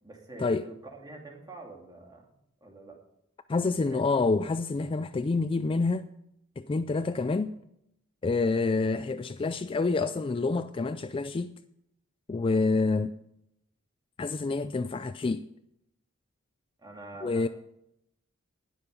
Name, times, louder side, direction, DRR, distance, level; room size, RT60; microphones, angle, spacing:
voice 1, 0.0-2.3 2.6-3.0 3.6-4.3 8.5-8.7 16.8-17.5, right 2 dB, 20° right, 2.5 m, -46 dB
voice 2, 3.5-6.1 6.6-7.6 8.2-11.6 12.3-13.1 14.2-15.5 17.2-17.5, left 3 dB, 25° left, 0.3 m, -27 dB
19.5 x 6.9 x 5.2 m
head